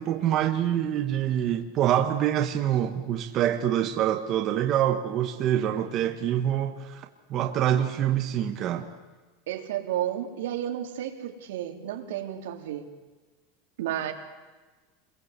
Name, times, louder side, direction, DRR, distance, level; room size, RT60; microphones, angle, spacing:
voice 1, 0.0-7.0 7.3-8.9, right 11 dB, 30° right, 4 dB, 1.4 m, -25 dB
voice 2, 9.5-12.9 13.8-14.1, right 11 dB, 80° right, 3 dB, 3.4 m, -32 dB
29.0 x 22.0 x 8.2 m, 1.3 s
supercardioid pair, 175°, 0 cm